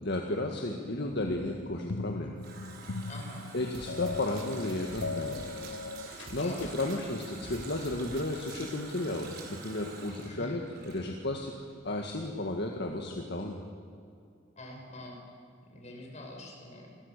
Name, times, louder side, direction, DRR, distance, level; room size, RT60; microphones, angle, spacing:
voice 1, 0.0-2.3 3.5-5.4 6.3-11.5 11.8-13.6, left 2 dB, 60° left, 1 dB, 1.9 m, -33 dB
sound 1, 1.2-6.8, left 3 dB, 80° left, 0.9 m, -39 dB
Water tap faucet, 1.9-11.5 11.8-11.9, right 3 dB, 55° right, 4.6 m, -47 dB
voice 2, 3.0-3.5 6.3-6.9 10.3-10.6 14.6-15.2 15.6-16.9, left 1 dB, 35° left, 0 dB, 6.0 m, -45 dB
sound 2, 3.7-8.8, right 2 dB, 80° right, 2.1 m, -48 dB
28.0 x 21.5 x 6.8 m, 2.3 s
head